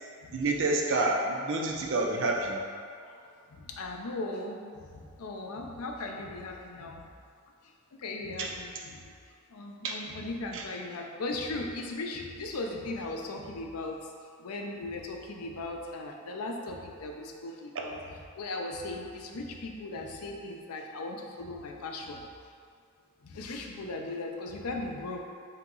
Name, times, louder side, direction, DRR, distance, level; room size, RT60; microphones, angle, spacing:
voice 1, 0.3-2.6 8.4-8.5 9.8-10.0 10.5-10.6, right 2 dB, 60° right, 0 dB, 0.5 m, -28 dB
voice 2, 2.9-7.0 7.6-7.7 8.0-9.1 9.5-14.1 14.4-18.0 18.4-22.2 23.2-25.2, left 2 dB, 85° left, 1 dB, 0.5 m, -38 dB
3.9 x 2.8 x 3.7 m, 2.2 s
head